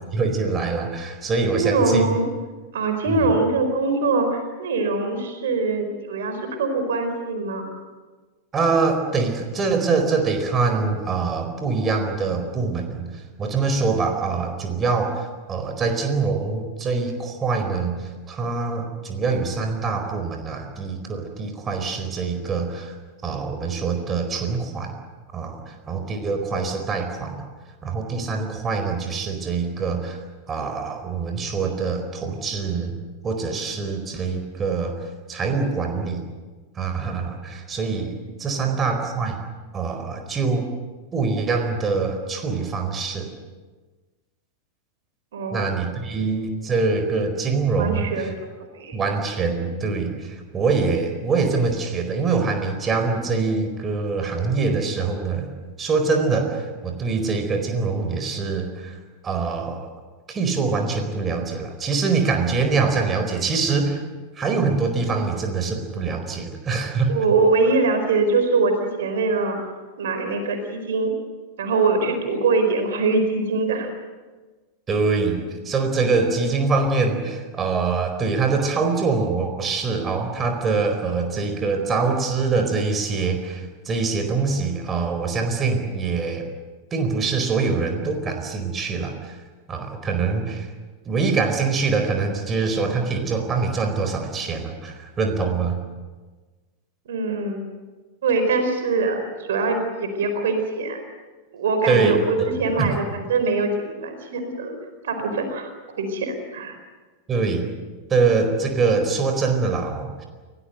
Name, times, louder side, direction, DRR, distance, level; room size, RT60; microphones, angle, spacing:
voice 1, 0.1-2.1 3.1-3.3 8.5-22.9 23.2-24.9 25.3-27.5 27.8-30.2 30.5-32.9 33.2-36.2 36.7-39.4 39.7-40.7 41.1-43.3 45.5-48.3 48.9-55.5 55.8-59.0 59.2-59.9 60.3-64.0 64.3-67.2 74.9-86.4 86.9-89.4 89.7-90.7 91.0-95.8 101.9-102.9 107.3-107.6 108.1-110.3, right 4 dB, 20° right, 5 dB, 4.5 m, -24 dB
voice 2, 1.5-2.3 2.7-7.7 38.6-38.7 45.3-45.6 47.8-48.3 48.7-49.0 67.1-69.6 70.0-71.1 71.6-73.9 97.1-97.6 98.2-101.0 101.5-104.7 105.0-105.7 106.0-106.8, right 3 dB, 60° right, 6 dB, 4.6 m, -23 dB
29.5 x 18.0 x 8.0 m, 1.3 s
figure-of-eight pair, 90°, 0 cm